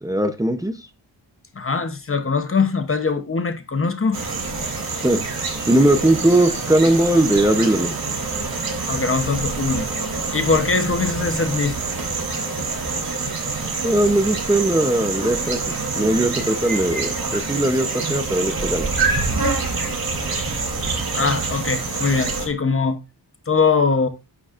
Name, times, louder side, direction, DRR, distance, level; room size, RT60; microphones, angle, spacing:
voice 1, 0.0-0.9 5.0-5.2 5.7-8.0 13.8-18.9, right 1 dB, 10° right, 0.7 m, -19 dB
voice 2, 1.5-4.2 8.9-9.9 10.3-11.8 21.1-23.0 23.5-24.1, left 4 dB, 35° left, 0.9 m, -21 dB
sound 1, 4.1-22.5, right 3 dB, 60° right, 3.6 m, -26 dB
9.9 x 9.2 x 2.5 m
wide cardioid pair, 160°, 40 cm